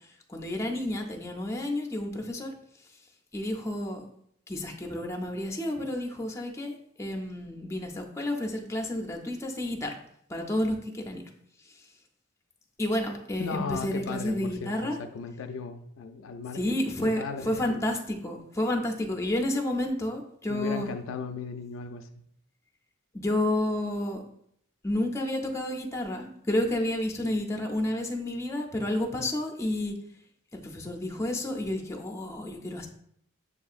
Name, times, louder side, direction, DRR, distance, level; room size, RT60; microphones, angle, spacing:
voice 1, 0.3-2.5 3.3-4.0 4.5-10.0 10.3-11.2 12.8-15.0 16.5-20.9 23.1-24.2 24.8-29.9 30.5-32.9, left 1 dB, 15° left, 2 dB, 0.5 m, -30 dB
voice 2, 13.4-17.8 20.5-22.1, left 5 dB, 75° left, 8 dB, 0.3 m, -37 dB
6.6 x 2.7 x 2.4 m, 0.70 s
head